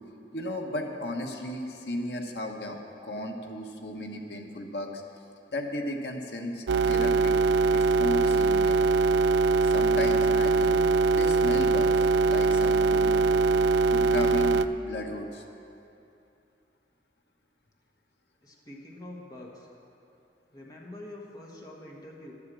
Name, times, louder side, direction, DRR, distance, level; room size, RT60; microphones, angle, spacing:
voice 1, 0.3-2.8 3.0-5.0 5.5-7.3 7.7-8.8 9.6-10.8 11.1-13.3 13.9-15.4, left 1 dB, 70° left, 2 dB, 1.2 m, -35 dB
sound 1, 6.7-14.7, right 3 dB, 80° right, 0.3 m, -22 dB
voice 2, 18.4-19.7 20.5-22.3, left 1 dB, 20° left, -2 dB, 1.3 m, -45 dB
11.5 x 8.1 x 7.5 m, 2.7 s
head